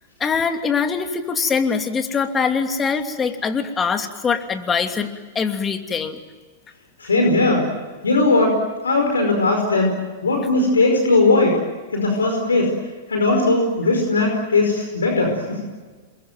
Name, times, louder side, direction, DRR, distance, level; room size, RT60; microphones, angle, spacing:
voice 1, 0.2-5.1 5.3-6.2, left 5 dB, 20° left, 6 dB, 2.9 m, -23 dB
voice 2, 7.0-7.7 8.0-9.9 10.2-11.6 11.9-12.7 13.1-15.6, left 2 dB, 85° left, 3 dB, 5.2 m, -18 dB
28.0 x 22.5 x 9.2 m, 1.4 s
hypercardioid pair, 105°, 0 cm